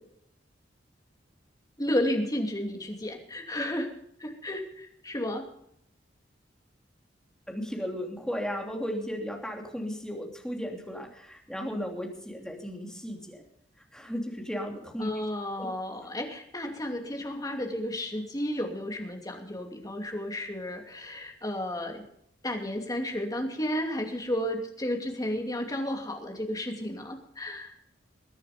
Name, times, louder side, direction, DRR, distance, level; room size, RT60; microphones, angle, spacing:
voice 1, 1.8-3.9 4.2-5.4 15.0-22.0 22.4-27.7, left 1 dB, 20° left, 3 dB, 2.7 m, -32 dB
voice 2, 7.5-13.4 13.9-15.1 15.6-15.7, equal, 5° left, 1 dB, 3.0 m, -35 dB
22.0 x 9.7 x 5.1 m, 0.72 s
head